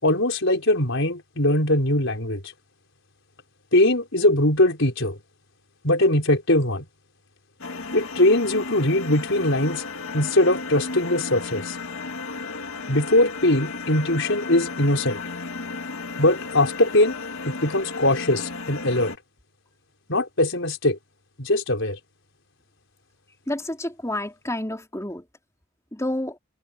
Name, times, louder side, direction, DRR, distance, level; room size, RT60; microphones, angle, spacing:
voice 1, 0.0-2.4 3.7-5.2 5.8-6.8 7.9-9.8 10.1-11.8 12.9-15.2 16.2-17.2 17.4-19.1 20.1-21.0 21.4-22.0, left 1 dB, 65° left, 5.0 m, -21 dB
sound 1, 7.6-19.2, left 3 dB, 80° left, 2.0 m, -34 dB
voice 2, 23.5-25.2 25.9-26.4, left 1 dB, 15° left, 3.9 m, -29 dB
head